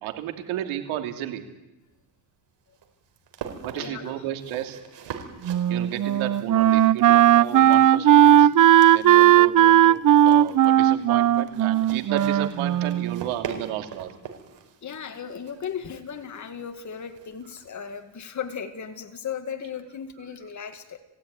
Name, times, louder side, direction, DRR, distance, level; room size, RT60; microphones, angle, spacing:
voice 1, 0.0-1.4 3.6-4.8 5.7-8.5 8.9-14.1, right 12 dB, 85° right, 6 dB, 2.9 m, -33 dB
sound 1, 1.8-18.1, right 7 dB, 60° right, 4.5 m, -44 dB
voice 2, 3.8-4.2 14.8-21.0, left 7 dB, 35° left, 6 dB, 2.0 m, -36 dB
Wind instrument woodwind instrument, 5.4-13.2, right 12 dB, 45° right, 0.7 m, -17 dB
21.5 x 16.0 x 9.6 m, 1.0 s
cardioid pair, 90°, 47 cm